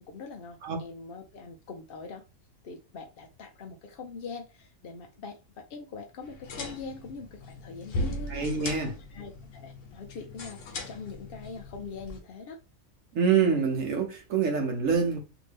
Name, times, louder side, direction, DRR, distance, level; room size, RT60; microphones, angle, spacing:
voice 1, 0.1-2.2 2.6-8.5 9.1-10.6 10.9-12.6, left 4 dB, 55° left, 0.7 m, -42 dB
sound 1, 6.2-12.2, left 1 dB, 75° left, 1.2 m, -38 dB
voice 2, 8.3-8.9 13.1-15.2, right 6 dB, 80° right, 1.1 m, -26 dB
2.9 x 2.6 x 3.3 m
omnidirectional pair, 1.3 m